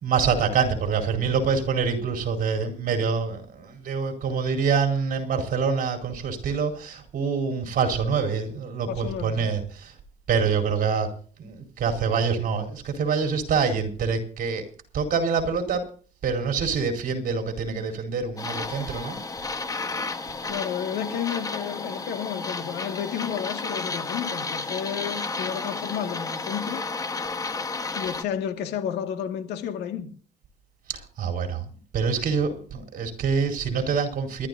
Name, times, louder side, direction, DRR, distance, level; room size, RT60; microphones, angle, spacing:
voice 1, 0.0-9.9 10.3-11.1 11.4-14.6 14.9-15.9 16.2-19.2 30.9-31.7 31.9-34.5, right 5 dB, 55° right, 4.4 m, -26 dB
voice 2, 8.9-9.5 20.5-26.8 27.9-30.1, left 9 dB, 85° left, 2.0 m, -31 dB
sound 1, 18.4-28.2, left 3 dB, 20° left, 1.2 m, -32 dB
28.5 x 12.5 x 2.7 m
cardioid pair, 110°, 17 cm